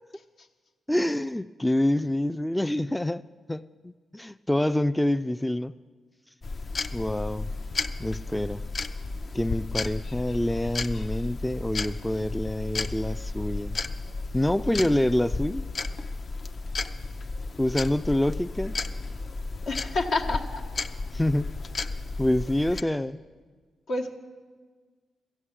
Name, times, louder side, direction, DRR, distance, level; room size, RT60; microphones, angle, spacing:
voice 1, 0.9-5.7 6.9-7.5 8.0-8.6 9.3-13.8 14.3-15.6 17.6-18.8 21.1-21.5 22.2-23.2, left 1 dB, 10° left, 11 dB, 0.3 m, -26 dB
sound 1, 6.4-22.8, left 3 dB, 55° left, 0.6 m, -33 dB
voice 2, 19.7-20.6 23.9-24.1, left 2 dB, 75° left, 0 dB, 1.2 m, -29 dB
14.0 x 8.2 x 7.3 m, 1.5 s
hypercardioid pair, 45°, 0 cm